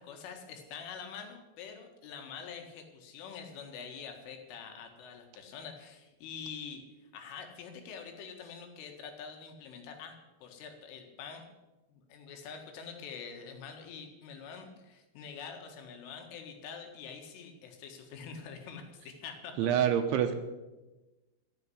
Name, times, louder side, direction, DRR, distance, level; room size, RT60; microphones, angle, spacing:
voice 1, 0.0-11.4 11.9-19.9, left 6 dB, 75° left, 4 dB, 4.2 m, -46 dB
voice 2, 19.6-20.3, right 9 dB, 75° right, 7 dB, 3.0 m, -26 dB
14.0 x 7.1 x 9.8 m, 1.1 s
omnidirectional pair, 5.8 m